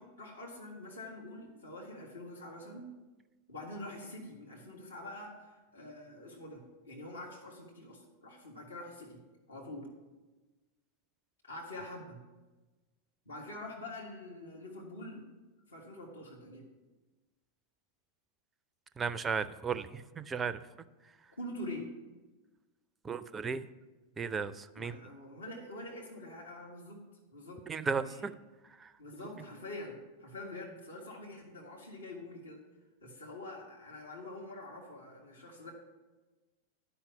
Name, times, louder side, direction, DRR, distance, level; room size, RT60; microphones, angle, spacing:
voice 1, 0.0-2.9 3.5-9.2 9.5-9.9 11.4-12.2 13.2-15.3 15.7-16.7 21.4-21.9 24.7-27.0 27.3-27.6 27.9-28.2 29.0-32.6 33.0-35.7, left 1 dB, 75° left, -1 dB, 1.5 m, -45 dB
voice 2, 19.0-20.6 23.0-23.7 24.2-24.9 27.7-28.3 28.8-28.9, right 5 dB, 20° right, 14 dB, 0.4 m, -35 dB
10.5 x 5.6 x 5.7 m, 1.2 s
figure-of-eight pair, 90°, 0 cm